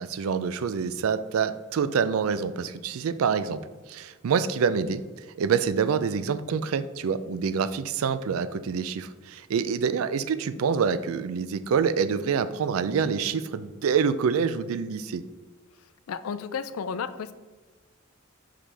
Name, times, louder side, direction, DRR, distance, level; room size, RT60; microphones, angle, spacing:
voice 1, 0.0-3.6 3.9-5.0 5.4-15.2, right 6 dB, 85° right, 13 dB, 0.4 m, -26 dB
voice 2, 15.8-17.3, left 6 dB, 90° left, 12 dB, 0.4 m, -33 dB
5.7 x 5.0 x 3.4 m, 1.3 s
head